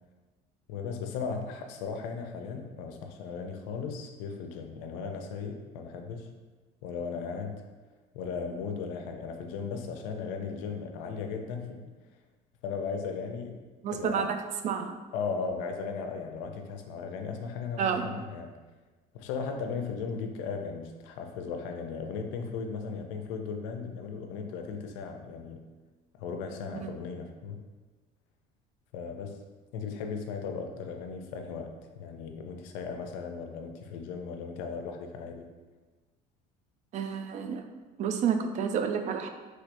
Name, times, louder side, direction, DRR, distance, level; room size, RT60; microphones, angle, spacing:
voice 1, 0.7-6.3 6.8-7.6 8.1-11.9 12.6-13.6 13.9-14.3 15.1-18.5 19.1-25.6 26.2-27.6 28.9-29.4 29.7-35.5, left 5 dB, 90° left, 4 dB, 0.4 m, -36 dB
voice 2, 13.8-14.4 14.6-15.0 17.8-18.1 26.8-26.9 36.9-37.6 38.0-39.3, right 7 dB, 45° right, 6 dB, 0.4 m, -29 dB
3.3 x 3.1 x 2.5 m, 1.3 s
supercardioid pair, 100°, 17 cm